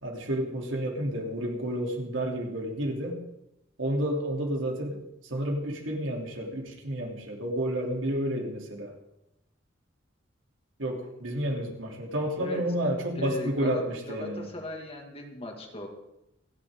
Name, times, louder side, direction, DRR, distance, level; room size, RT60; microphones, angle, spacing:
voice 1, 0.0-3.2 3.8-8.9 10.8-14.5, right 1 dB, 80° right, 0 dB, 3.1 m, -30 dB
voice 2, 13.2-15.9, left 1 dB, 30° left, 3 dB, 2.1 m, -38 dB
27.5 x 9.7 x 3.7 m, 0.88 s
head